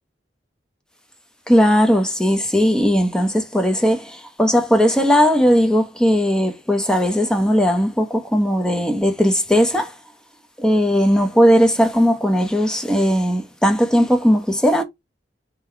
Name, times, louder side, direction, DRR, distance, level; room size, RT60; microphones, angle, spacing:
voice 1, 1.5-9.9 10.6-14.8, equal, 5° left, 0.8 m, -17 dB
3.7 x 2.9 x 4.5 m
head